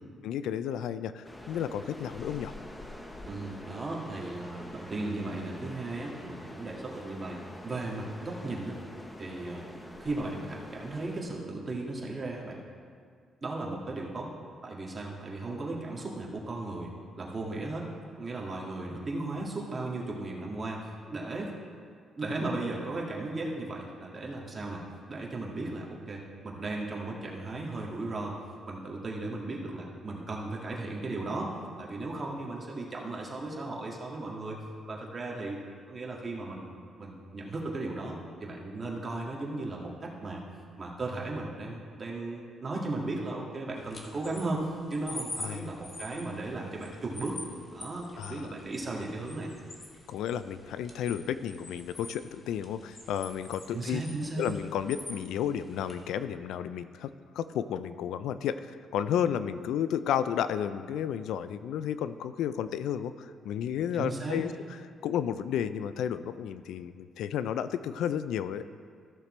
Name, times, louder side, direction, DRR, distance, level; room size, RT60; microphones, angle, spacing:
voice 1, 0.2-2.5 45.4-45.7 48.2-48.5 50.1-54.0 54.4-64.5 65.0-68.6, left 9 dB, 85° left, 13 dB, 0.3 m, -32 dB
sound 1, 1.2-11.2, left 1 dB, 15° left, 0.9 m, -45 dB
voice 2, 3.3-8.8 9.2-9.7 10.0-12.6 13.4-14.3 14.6-16.9 17.2-17.9 18.2-21.5 22.2-24.8 25.1-28.3 28.7-31.5 31.8-35.6 35.9-40.4 40.8-47.4 47.7-49.5 53.7-54.5 63.9-64.4, right 2 dB, 30° right, -2 dB, 1.9 m, -36 dB
sound 2, 43.8-56.1, left 1 dB, 35° left, 1.5 m, -46 dB
14.0 x 6.7 x 3.2 m, 2.2 s
cardioid pair, 90°, 0 cm